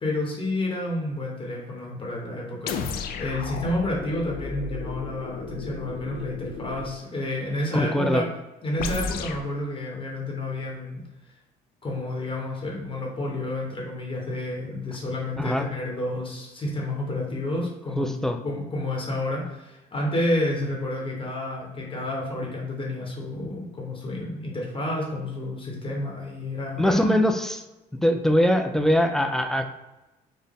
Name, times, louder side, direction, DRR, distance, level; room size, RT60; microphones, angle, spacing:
voice 1, 0.0-8.2 8.6-11.0 11.8-18.1 18.4-27.1, left 1 dB, 30° left, -2 dB, 1.0 m, -30 dB
sound 1, 2.7-7.0 8.8-9.5, left 4 dB, 65° left, 0.4 m, -33 dB
voice 2, 7.7-8.2 15.4-15.7 18.0-18.4 26.8-27.6 28.0-29.6, equal, 5° left, 5 dB, 0.3 m, -22 dB
4.0 x 2.1 x 3.5 m, 1.0 s
cardioid pair, 110°, 17 cm